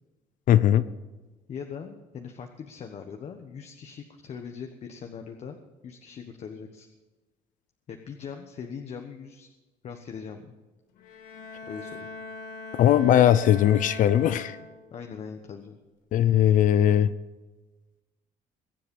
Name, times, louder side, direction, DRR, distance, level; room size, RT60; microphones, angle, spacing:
voice 1, 0.5-0.8 12.8-14.6 16.1-17.1, left 11 dB, 65° left, 14 dB, 0.6 m, -19 dB
voice 2, 1.5-6.9 7.9-9.5 9.8-10.5 11.7-12.0 14.9-15.8, left 6 dB, 50° left, 5 dB, 1.2 m, -40 dB
Bowed string instrument, 11.0-15.0, left 3 dB, 85° left, 1.6 m, -41 dB
22.0 x 7.7 x 5.4 m, 1.2 s
cardioid pair, 115°, 14 cm